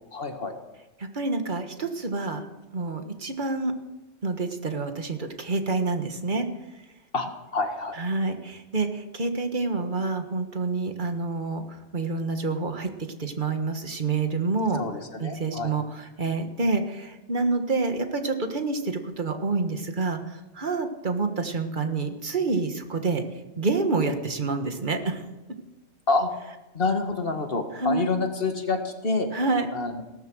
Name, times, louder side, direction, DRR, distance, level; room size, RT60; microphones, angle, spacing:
voice 1, 0.1-0.6 7.1-7.3 7.5-8.0 14.7-15.7 26.1-26.3 26.7-29.3 29.7-30.0, left 3 dB, 50° left, 5 dB, 1.9 m, -27 dB
voice 2, 1.0-2.4 2.7-3.7 4.2-6.5 8.0-11.6 11.9-12.9 13.2-14.8 15.2-15.8 16.2-23.2 23.6-25.2 27.8-28.1 29.3-29.7, right 3 dB, 40° right, 6 dB, 1.7 m, -27 dB
17.5 x 13.5 x 6.3 m, 1.1 s
omnidirectional pair, 1.2 m